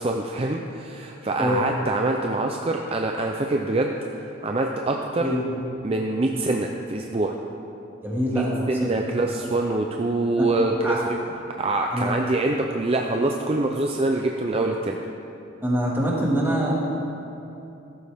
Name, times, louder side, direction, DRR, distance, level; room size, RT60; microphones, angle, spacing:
voice 1, 0.0-3.9 4.4-5.3 5.8-7.4 8.3-11.2 11.6-15.0, right 2 dB, 30° right, 2 dB, 0.5 m, -25 dB
voice 2, 5.2-5.6 8.0-8.9 10.4-10.5 10.8-11.0 11.9-12.1 15.6-16.7, equal, 10° right, -4 dB, 2.0 m, -24 dB
14.0 x 12.5 x 3.5 m, 2.8 s
head